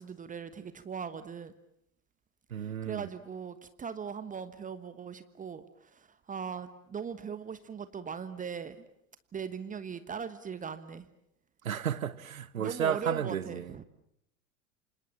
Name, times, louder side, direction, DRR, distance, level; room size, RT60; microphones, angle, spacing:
voice 1, 0.0-1.5 2.6-8.8 9.3-11.1 12.6-13.8, right 6 dB, 20° right, 1.3 m, -40 dB
voice 2, 2.5-3.1 11.6-13.7, right 8 dB, 75° right, 1.2 m, -33 dB
29.0 x 26.0 x 7.3 m
figure-of-eight pair, 80°, 41 cm